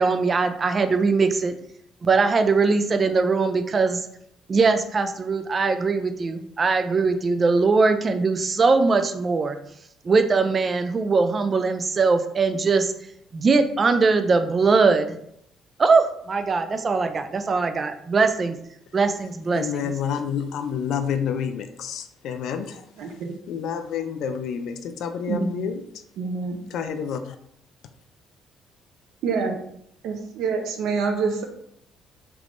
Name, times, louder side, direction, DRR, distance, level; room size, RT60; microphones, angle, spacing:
voice 1, 0.0-1.6 2.0-4.0 4.5-9.6 10.0-12.9 13.3-15.1 15.8-18.6 18.9-19.9, right 4 dB, 30° right, 0.3 m, -21 dB
voice 2, 19.5-22.8 23.5-25.8 26.7-27.4, left 7 dB, 70° left, 0.3 m, -29 dB
voice 3, 23.0-23.3 25.3-25.7 26.2-26.6 29.2-29.6 30.0-31.4, right 4 dB, 75° right, 0.6 m, -26 dB
3.4 x 3.1 x 2.5 m
cardioid pair, 135°, 0 cm